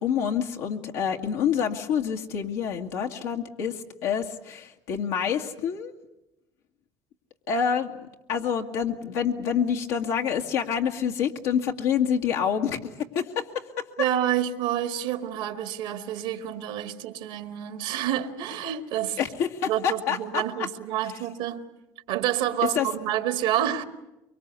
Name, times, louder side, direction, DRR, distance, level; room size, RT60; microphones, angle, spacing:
voice 1, 0.0-5.9 7.5-13.8 19.2-20.7 22.7-22.9, left 7 dB, 90° left, 1 dB, 2.0 m, -27 dB
voice 2, 14.0-19.2 19.6-21.7 22.1-23.8, right 11 dB, 85° right, 8 dB, 1.8 m, -28 dB
24.5 x 23.5 x 8.3 m, 0.95 s
supercardioid pair, 80°, 10 cm